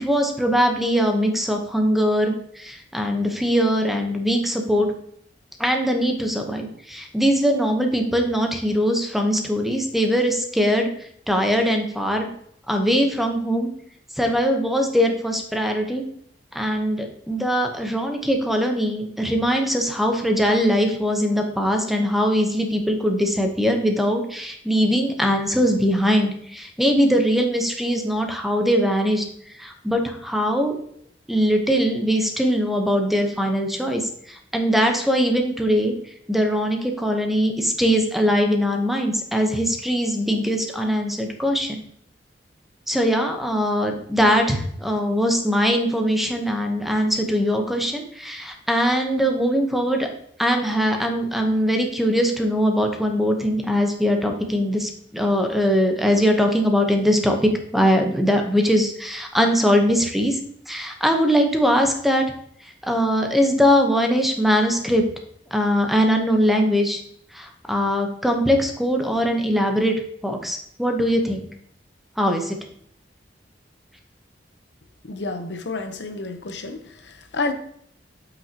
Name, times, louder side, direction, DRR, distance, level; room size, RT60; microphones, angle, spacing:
voice 1, 0.0-4.9 5.6-10.9 11.3-12.3 12.7-13.7 14.2-16.0 16.5-29.2 29.6-30.8 31.3-35.9 36.3-41.8 42.9-50.1 50.4-60.4 60.7-62.2 62.8-65.0 65.5-67.0 67.3-69.9 70.2-71.5 72.2-72.6, equal, ahead, 0.9 m, -21 dB
voice 2, 75.0-77.5, left 3 dB, 75° left, 0.8 m, -30 dB
8.0 x 6.0 x 2.8 m
head